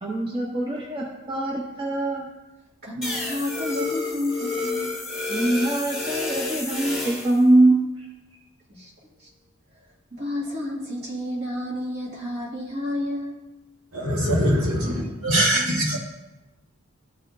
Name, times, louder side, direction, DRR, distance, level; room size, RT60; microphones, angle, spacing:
voice 1, 0.0-2.3 5.3-8.1, right 2 dB, 25° right, -2 dB, 0.7 m, -22 dB
voice 2, 2.8-5.0 8.7-8.9 9.2-9.3 10.1-13.4, left 1 dB, 50° right, -5 dB, 2.2 m, -30 dB
sound 1, 3.0-7.4, left 3 dB, 5° right, 1.3 m, -30 dB
voice 3, 13.9-16.0, equal, 80° right, -3 dB, 1.6 m, -22 dB
13.0 x 4.8 x 2.6 m, 1.0 s
head